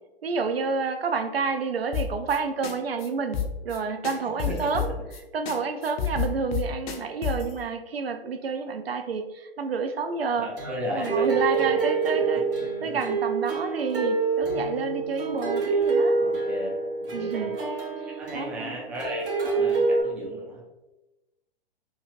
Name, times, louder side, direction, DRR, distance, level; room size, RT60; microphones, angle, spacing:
voice 1, 0.2-4.9 5.3-10.5 10.9-12.5 12.8-16.2 17.1-17.6 18.3-18.7 19.6-19.7, right 5 dB, 85° right, 7 dB, 0.5 m, -29 dB
sound 1, 1.9-2.4 2.6-2.7 3.0-3.1 3.3-3.8 4.0-5.2 5.5-5.6 5.8-7.5, left 8 dB, 50° left, 0.6 m, -29 dB
voice 2, 4.5-4.9 10.4-11.8 12.8-12.9 16.2-16.7 17.0-17.6 18.2-20.7, equal, 5° right, -3 dB, 0.3 m, -35 dB
sound 2, 10.6-20.0, right 4 dB, 70° right, 1.1 m, -27 dB
2.9 x 2.7 x 2.9 m, 1.1 s
figure-of-eight pair, 110°, 29 cm